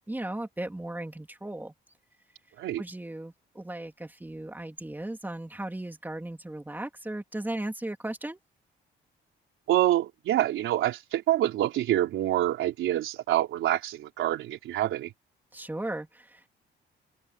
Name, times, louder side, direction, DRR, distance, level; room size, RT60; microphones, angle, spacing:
voice 1, 0.1-1.7 2.8-8.4 15.5-16.5, right 1 dB, 10° right, 3.4 m, -36 dB
voice 2, 9.7-15.1, right 13 dB, 85° right, 4.0 m, -26 dB
open air
cardioid pair, 90°, 20 cm